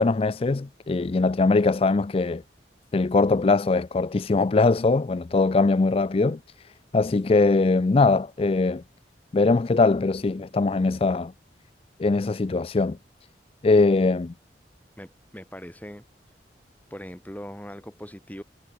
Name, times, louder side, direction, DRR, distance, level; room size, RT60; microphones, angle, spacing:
voice 1, 0.0-2.4 2.9-6.4 6.9-8.8 9.3-11.3 12.0-13.0 13.6-14.3, left 3 dB, 30° left, 0.4 m, -21 dB
voice 2, 15.0-16.0 16.9-18.4, equal, 10° left, 4.2 m, -40 dB
head